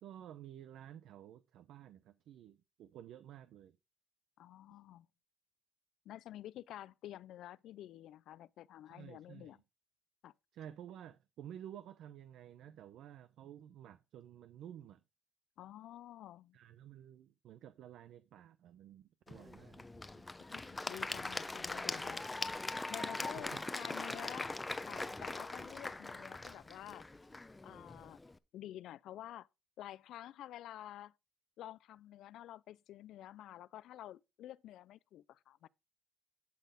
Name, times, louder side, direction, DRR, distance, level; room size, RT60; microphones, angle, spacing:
voice 1, 0.0-3.8 8.9-9.6 10.5-15.0 16.5-20.2 23.4-23.6, right 10 dB, 80° right, 0.7 m, -52 dB
voice 2, 4.4-5.1 6.1-9.6 10.2-10.3 15.6-16.6 20.5-22.2 22.9-27.1 27.6-28.2 28.5-29.5 29.8-31.1 31.6-35.7, left 13 dB, 80° left, 0.4 m, -50 dB
Applause / Crowd, 19.3-28.3, left 2 dB, 20° left, 0.7 m, -42 dB
12.0 x 4.2 x 5.2 m
cardioid pair, 90°, 0 cm